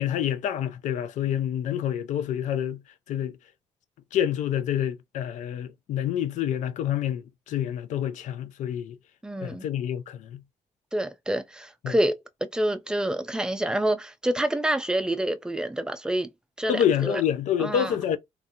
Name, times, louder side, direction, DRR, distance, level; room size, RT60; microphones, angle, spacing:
voice 1, 0.0-2.8 3.1-3.4 4.1-9.0 9.4-10.4 11.8-12.0 16.7-18.2, left 10 dB, 80° left, 0.4 m, -27 dB
voice 2, 9.2-9.7 10.9-12.2 12.5-16.3 16.6-17.2 17.6-18.0, right 1 dB, 5° right, 0.4 m, -27 dB
2.7 x 2.3 x 2.6 m
cardioid pair, 125°, 12 cm